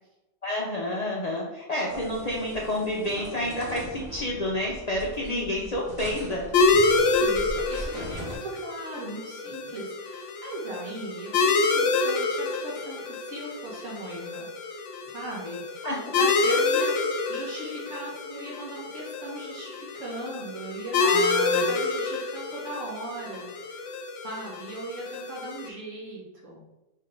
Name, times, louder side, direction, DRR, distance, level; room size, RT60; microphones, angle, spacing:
voice 1, 0.4-6.5 15.8-16.6 21.0-21.7, left 1 dB, 50° left, -3 dB, 0.5 m, -29 dB
sound 1, 1.9-8.4, right 1 dB, 20° right, 0.8 m, -40 dB
voice 2, 5.2-5.7 6.7-15.9 16.4-21.1 21.6-26.7, right 2 dB, 75° right, -5 dB, 1.7 m, -39 dB
sound 2, 6.5-25.7, left 4 dB, 75° left, 0.9 m, -27 dB
3.6 x 3.2 x 3.7 m, 0.99 s
omnidirectional pair, 1.3 m